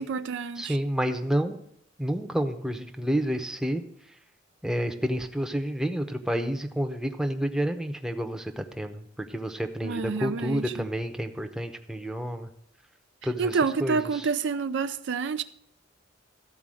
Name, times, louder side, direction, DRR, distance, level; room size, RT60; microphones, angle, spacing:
voice 1, 0.0-0.8 9.8-10.9 13.4-15.4, right 5 dB, 65° right, 0.5 m, -28 dB
voice 2, 0.6-1.6 2.0-3.8 4.6-12.5 13.2-14.3, equal, 5° right, 0.8 m, -29 dB
13.5 x 4.6 x 7.6 m
head